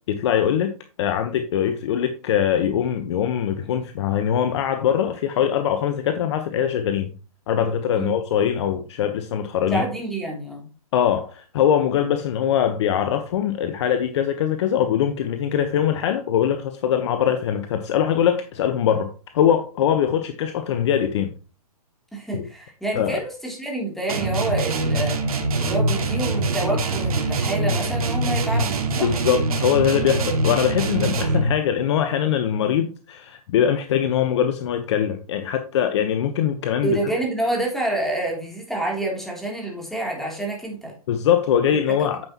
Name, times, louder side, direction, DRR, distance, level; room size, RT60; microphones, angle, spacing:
voice 1, 0.1-0.7 1.0-7.1 7.5-9.8 10.9-21.3 22.3-22.4 23.0-23.2 28.9-37.0 41.1-42.2, left 9 dB, 45° left, 1.1 m, -22 dB
voice 2, 9.7-10.7 22.1-25.2 25.6-29.1 36.8-40.9 41.6-41.8, right 2 dB, ahead, 3.1 m, -28 dB
sound 1, 24.1-31.6, right 2 dB, 70° right, 2.2 m, -23 dB
9.8 x 7.8 x 3.0 m
hypercardioid pair, 145°, 19 cm